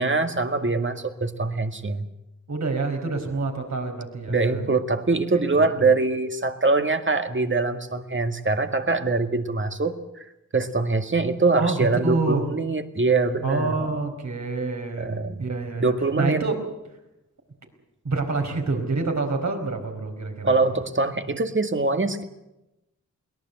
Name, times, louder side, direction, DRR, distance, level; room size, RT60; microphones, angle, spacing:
voice 1, 0.0-2.0 4.3-10.3 10.5-13.7 15.0-15.4 15.8-16.4 20.4-22.2, right 3 dB, 40° right, 7 dB, 2.0 m, -23 dB
voice 2, 2.5-4.6 5.3-5.9 11.6-12.4 13.4-16.5 18.0-20.5, right 3 dB, 65° right, 4 dB, 4.7 m, -27 dB
22.5 x 18.5 x 8.0 m, 0.94 s
cardioid pair, 55°, 30 cm